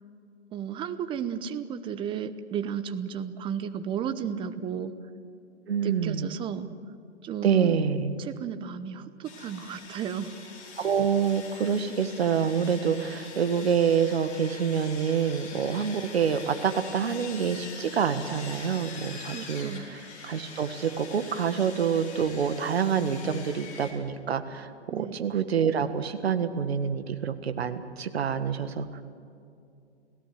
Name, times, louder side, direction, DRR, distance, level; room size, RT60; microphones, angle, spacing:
voice 1, 0.5-4.9 5.8-6.7 7.2-7.8 8.2-10.3 19.2-20.0 24.9-25.2, right 8 dB, 15° right, 11 dB, 0.9 m, -33 dB
voice 2, 5.7-6.3 7.4-8.2 10.8-28.9, right 7 dB, 60° right, 10 dB, 1.8 m, -27 dB
Sawing, 9.2-23.9, left 4 dB, 20° left, 5.0 m, -44 dB
30.0 x 17.0 x 8.0 m, 2.5 s
figure-of-eight pair, 125°, 34 cm